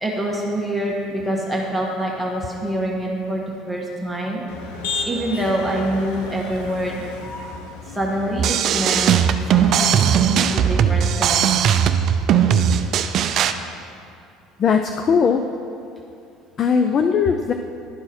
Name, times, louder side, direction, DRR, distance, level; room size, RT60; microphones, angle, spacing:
voice 1, 0.0-4.4 5.0-7.0 7.9-9.1 9.5-11.4, right 1 dB, 5° right, -3 dB, 1.4 m, -25 dB
Motor vehicle (road), 4.5-10.1, left 4 dB, 90° left, 0.8 m, -34 dB
sound 1, 8.4-13.5, right 8 dB, 50° right, 0.4 m, -18 dB
voice 2, 14.6-15.4 16.6-17.5, left 6 dB, 40° left, 6 dB, 0.4 m, -18 dB
11.5 x 4.6 x 4.3 m, 2.4 s
cardioid pair, 125°, 0 cm